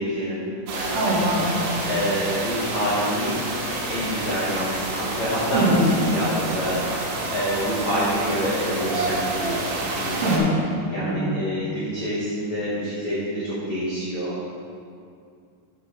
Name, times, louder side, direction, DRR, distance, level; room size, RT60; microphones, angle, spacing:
voice 1, 0.0-1.2 1.8-3.4 3.7-10.4 10.9-14.5, equal, 80° left, -9 dB, 1.6 m, -27 dB
sound 1, 0.7-10.4, right 2 dB, 85° right, 4.1 m, -29 dB
voice 2, 0.9-1.8 5.5-5.9 10.2-10.6 11.1-11.3, equal, 70° right, -6 dB, 3.6 m, -22 dB
11.0 x 5.4 x 4.9 m, 2.3 s
omnidirectional pair, 5.8 m